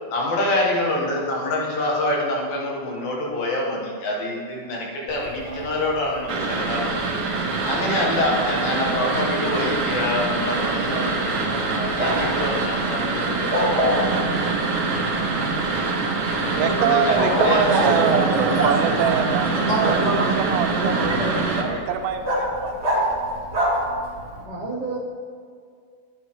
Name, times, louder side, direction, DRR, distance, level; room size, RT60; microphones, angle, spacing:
voice 1, 0.1-7.0 7.6-14.0 16.5-17.9, left 1 dB, 75° left, -2 dB, 3.2 m, -26 dB
Bark, 5.1-24.4, equal, 40° right, 0.9 m, -30 dB
sound 1, 6.3-21.6, right 3 dB, 65° right, 1.4 m, -24 dB
voice 2, 16.5-22.7, right 7 dB, 90° right, 5 dB, 2.6 m, -24 dB
voice 3, 17.7-19.1 19.6-21.3 21.7-21.8 24.3-25.0, right 2 dB, 40° left, -10 dB, 1.0 m, -26 dB
9.9 x 9.2 x 3.2 m, 2.2 s
omnidirectional pair, 4.2 m